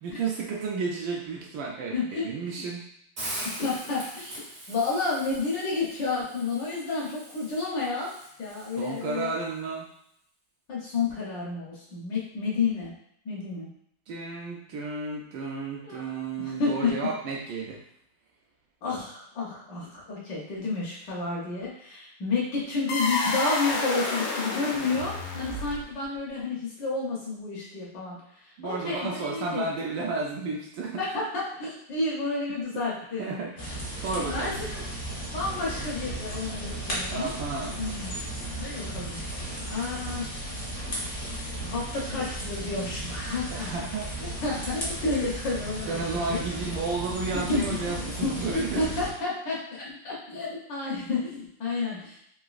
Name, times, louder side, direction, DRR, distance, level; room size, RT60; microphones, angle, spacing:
voice 1, 0.0-2.9 8.8-9.9 14.1-17.8 28.6-31.0 32.7-32.8 33.2-33.5 34.0-34.5 37.1-37.8 43.5-44.4 45.9-48.9, right 4 dB, 75° right, -2 dB, 1.2 m, -32 dB
voice 2, 1.9-2.6 3.6-4.4 4.7-8.1 8.4-9.3 10.7-12.9 13.2-13.7 15.8-17.0 18.8-29.7 30.9-33.4 34.2-34.8 35.3-37.3 37.8-38.2 38.6-39.4 39.7-40.3 41.6-43.9 44.2-46.4 47.3-52.2, left 3 dB, 65° left, -5 dB, 1.3 m, -31 dB
Hiss, 3.2-9.2, right 1 dB, 55° right, 0.6 m, -41 dB
sound 1, 22.9-26.0, left 2 dB, 85° left, 1.6 m, -30 dB
sound 2, 33.6-49.1, right 1 dB, 45° left, 0.7 m, -35 dB
3.9 x 2.6 x 2.3 m, 0.72 s
omnidirectional pair, 2.3 m